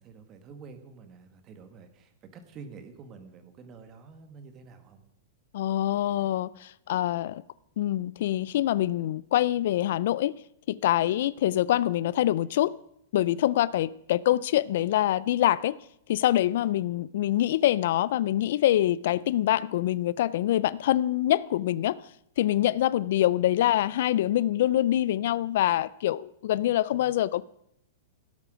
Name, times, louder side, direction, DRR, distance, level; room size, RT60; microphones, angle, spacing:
voice 1, 0.0-5.0, right 5 dB, 30° right, 1.6 m, -48 dB
voice 2, 5.5-7.4 7.8-10.3 10.7-12.7 13.1-15.8 16.1-22.0 22.4-27.4, left 13 dB, 65° left, 0.4 m, -25 dB
17.0 x 8.3 x 5.1 m
hypercardioid pair, 145°, 0 cm